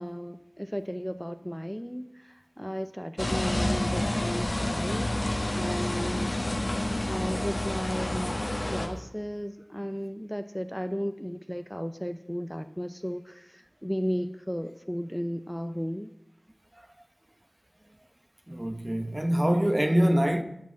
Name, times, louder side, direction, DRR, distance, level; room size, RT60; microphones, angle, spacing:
voice 1, 0.0-5.2 5.5-6.4 7.1-16.1, equal, 5° left, 0.6 m, -34 dB
sound 1, 3.2-8.9, left 1 dB, 65° left, 1.5 m, -29 dB
voice 2, 18.5-20.4, equal, 35° right, 0.9 m, -24 dB
14.0 x 6.0 x 8.5 m
wide cardioid pair, 45°, 0 cm